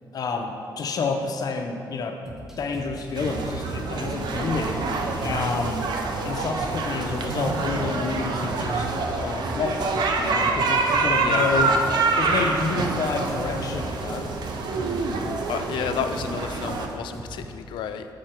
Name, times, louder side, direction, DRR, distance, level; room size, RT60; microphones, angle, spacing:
voice 1, 0.1-2.2 2.6-4.8 5.2-5.9 6.2-8.9 9.1-11.7 12.2-14.3, left 4 dB, 55° left, 4 dB, 0.7 m, -29 dB
sound 1, 2.3-17.6, equal, 5° right, 0.8 m, -41 dB
sound 2, 3.2-16.9, right 3 dB, 65° right, 0.6 m, -26 dB
voice 2, 11.2-11.8 15.5-18.1, left 8 dB, 90° left, 8 dB, 0.4 m, -31 dB
6.3 x 5.5 x 4.4 m, 2.5 s
cardioid pair, 115°, 8 cm